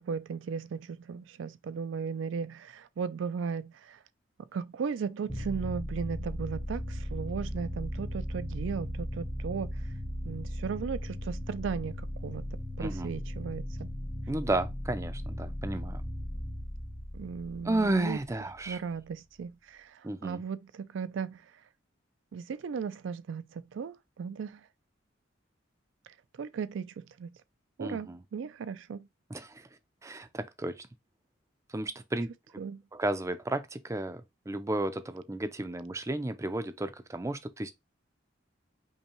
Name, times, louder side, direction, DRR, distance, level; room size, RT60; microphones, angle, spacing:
voice 1, 0.0-4.0 4.5-9.7 10.2-11.9 12.2-12.4 12.8-13.9 17.1-18.2 18.7-21.4 22.3-24.6 26.4-27.3 27.8-29.1 32.6-32.8, right 6 dB, 75° right, 0.4 m, -36 dB
sound 1, 5.3-18.7, equal, 15° left, 0.8 m, -37 dB
voice 2, 12.8-13.1 14.3-16.0 17.6-18.8 20.0-20.4 27.8-28.2 29.3-29.7 30.0-30.9 31.7-32.3 32.9-37.7, right 2 dB, 15° right, 0.4 m, -33 dB
5.4 x 2.2 x 3.0 m
head